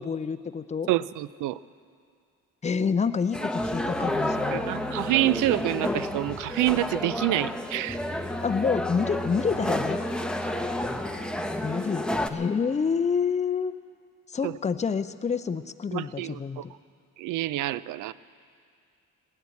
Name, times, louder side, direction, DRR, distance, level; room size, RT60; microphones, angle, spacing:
voice 1, 0.0-0.9 2.6-4.6 8.4-10.0 11.6-13.7 14.3-16.7, left 6 dB, 25° left, 11 dB, 0.6 m, -28 dB
voice 2, 0.9-1.6 4.5-8.0 14.4-14.5 15.9-16.6 17.2-18.1, right 16 dB, 85° right, 18 dB, 0.5 m, -27 dB
sound 1, 3.3-12.3, left 1 dB, 5° left, 0.9 m, -30 dB
17.5 x 10.0 x 8.3 m, 2.3 s
cardioid pair, 90°, 30 cm